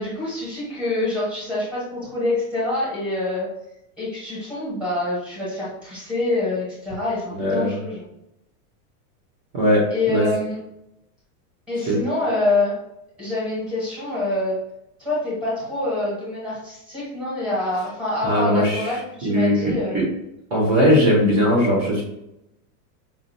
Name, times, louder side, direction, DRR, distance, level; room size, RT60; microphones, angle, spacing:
voice 1, 0.0-3.5 4.0-8.0 9.9-10.6 11.7-12.7 13.2-14.6 15.0-20.0, left 2 dB, ahead, -7 dB, 1.3 m, -26 dB
voice 2, 7.4-7.7 9.5-10.3 11.8-12.0 18.2-18.9 19.2-20.1 20.5-22.0, equal, 35° right, -2 dB, 1.1 m, -19 dB
5.4 x 2.7 x 2.7 m, 0.87 s
supercardioid pair, 180°, 46 cm